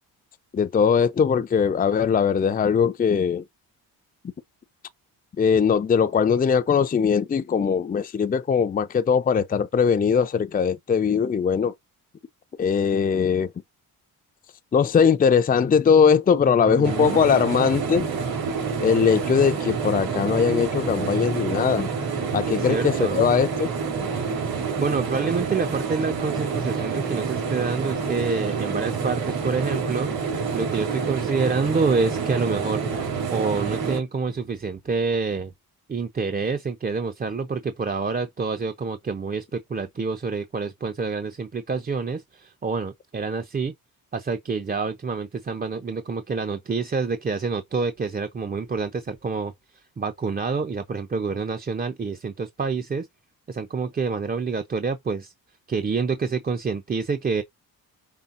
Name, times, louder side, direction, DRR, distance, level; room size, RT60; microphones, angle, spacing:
voice 1, 0.5-3.4 5.4-11.7 12.6-13.5 14.7-18.1 18.8-21.9 22.3-23.7, left 6 dB, 25° left, 0.5 m, -20 dB
voice 2, 16.5-17.2 22.4-23.3 24.8-32.8 33.3-35.5 35.9-43.7 44.1-49.5 50.0-53.1 53.5-55.3 55.7-57.4, right 4 dB, 25° right, 0.7 m, -27 dB
sound 1, 16.8-34.0, right 5 dB, 70° right, 3.0 m, -28 dB
5.6 x 3.3 x 2.6 m
cardioid pair, 105°, 38 cm